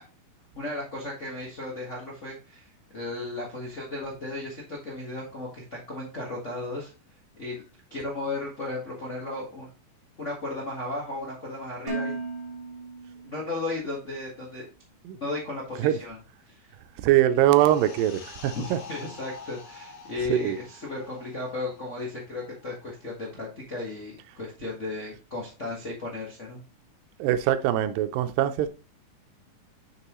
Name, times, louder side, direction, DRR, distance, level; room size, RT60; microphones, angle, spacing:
voice 1, 0.5-6.9 7.4-7.6 7.9-9.7 10.2-12.1 13.2-14.6 15.2-16.2 16.5-16.7 18.5-26.6, left 2 dB, 85° left, 0.6 m, -35 dB
Dishes pots and pans, 11.9-13.9, right 3 dB, 35° right, 0.5 m, -36 dB
voice 2, 17.0-18.8 20.3-20.6 27.2-28.7, right 12 dB, 80° right, 2.3 m, -22 dB
sound 1, 17.6-22.7 22.9-23.1, left 5 dB, 60° left, 2.6 m, -46 dB
6.8 x 6.0 x 3.0 m
omnidirectional pair, 4.1 m